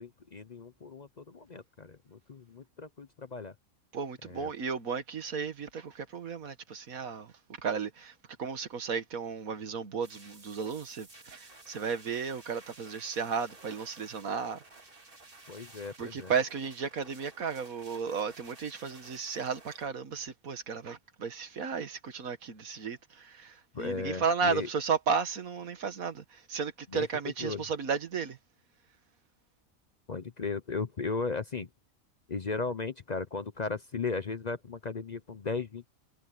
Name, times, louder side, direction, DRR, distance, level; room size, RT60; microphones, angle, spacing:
voice 1, 0.0-3.5 4.2-4.5 15.5-16.3 23.7-24.7 26.9-27.1 27.4-27.7 30.1-31.7 32.3-35.9, left 4 dB, 40° left, 0.7 m, -36 dB
voice 2, 3.9-7.3 7.6-8.1 8.4-14.6 16.0-28.4, right 6 dB, 85° right, 2.0 m, -34 dB
sound 1, 10.0-19.9, right 2 dB, 40° right, 2.8 m, -54 dB
omnidirectional pair, 1.4 m